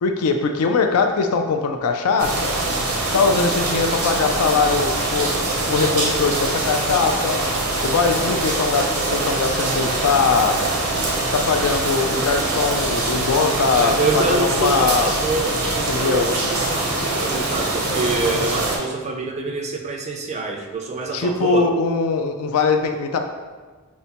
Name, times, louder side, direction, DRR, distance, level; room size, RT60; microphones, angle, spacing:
voice 1, 0.0-2.6 3.1-5.3 5.7-7.4 7.8-10.6 11.3-15.2 15.9-16.3 21.1-23.2, left 4 dB, 80° left, 5 dB, 0.4 m, -21 dB
sound 1, 2.2-18.8, right 2 dB, 75° right, 0.7 m, -23 dB
voice 2, 13.7-21.7, right 3 dB, 30° right, 3 dB, 0.3 m, -26 dB
5.2 x 2.1 x 2.8 m, 1.4 s
head